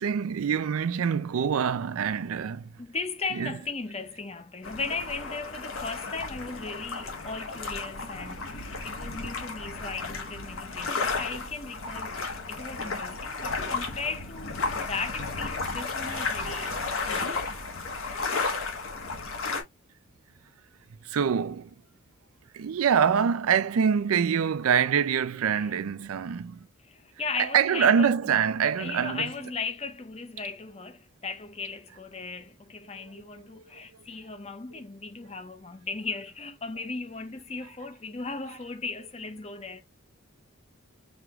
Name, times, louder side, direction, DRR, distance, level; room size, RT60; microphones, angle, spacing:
voice 1, 0.0-2.7 3.3-3.6 13.4-13.8 16.1-16.7 19.1-19.2 21.0-21.7 22.5-26.6 27.4-29.3 33.3-33.4, right 7 dB, 80° right, 0.4 m, -25 dB
voice 2, 2.8-16.8 17.1-17.6 25.5-25.7 26.8-28.1 28.8-39.8, left 4 dB, 30° left, 0.7 m, -37 dB
sound 1, 4.6-19.6, left 4 dB, 70° left, 1.3 m, -33 dB
6.2 x 3.0 x 2.4 m
head